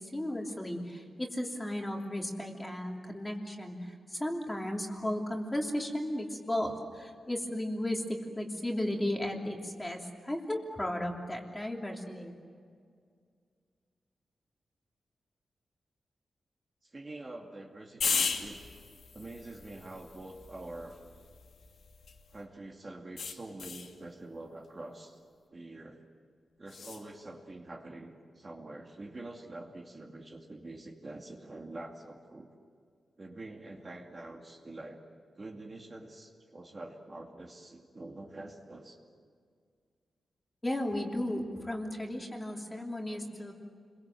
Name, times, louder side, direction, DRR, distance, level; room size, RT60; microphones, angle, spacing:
voice 1, 0.1-10.0 10.2-12.3 40.6-43.5, left 1 dB, 10° left, 0 dB, 2.9 m, -35 dB
voice 2, 16.8-18.6 19.1-21.0 22.3-25.2 25.5-26.1 26.6-32.5 33.2-35.0 35.4-39.0, right 2 dB, 30° right, 1 dB, 2.5 m, -46 dB
sound 1, 18.0-22.4 23.2-23.9 26.7-27.0, left 5 dB, 75° left, 2.6 m, -37 dB
30.0 x 23.0 x 7.8 m, 2.1 s
wide cardioid pair, 160°, 0 cm